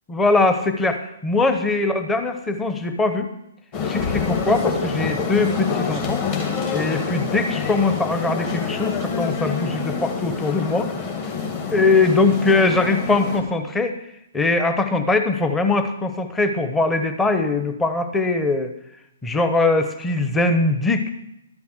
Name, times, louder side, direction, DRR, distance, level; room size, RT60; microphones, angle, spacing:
voice 1, 0.1-3.3 3.8-6.2 6.7-10.9 11.7-14.0 14.3-18.7 19.2-21.1, left 3 dB, 10° left, 7 dB, 0.9 m, -21 dB
sound 1, 3.7-13.4, left 5 dB, 35° left, 2.3 m, -26 dB
Bass drum, 4.0-5.4, left 4 dB, 60° left, 1.9 m, -34 dB
12.5 x 7.1 x 6.4 m, 0.83 s
hypercardioid pair, 135°, 0 cm